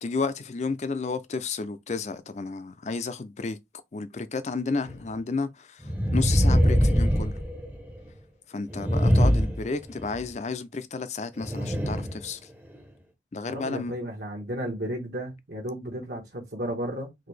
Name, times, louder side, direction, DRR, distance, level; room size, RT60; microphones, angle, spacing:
voice 1, 0.0-3.6 3.9-5.8 6.1-7.4 8.5-12.4 13.3-13.9, left 4 dB, 40° left, 0.4 m, -32 dB
sound 1, 4.9-5.0 5.8-8.0 8.7-10.2 11.4-12.2 12.7-12.8, equal, 10° right, 0.7 m, -23 dB
voice 2, 13.5-17.1, right 1 dB, 60° right, 1.1 m, -33 dB
4.0 x 2.7 x 3.2 m
head